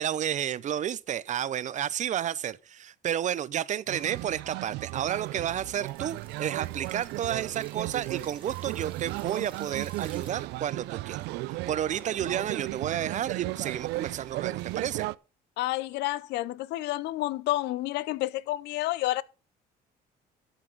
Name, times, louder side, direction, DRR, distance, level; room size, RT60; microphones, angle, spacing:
voice 1, 0.0-15.1, right 10 dB, 45° right, 0.6 m, -31 dB
sound 1, 3.9-15.1, right 19 dB, 90° right, 0.4 m, -35 dB
sound 2, 4.8-10.3, right 5 dB, 30° right, 1.9 m, -54 dB
voice 2, 15.6-19.2, left 17 dB, 80° left, 0.6 m, -30 dB
12.5 x 5.9 x 5.1 m
cardioid pair, 110°, 17 cm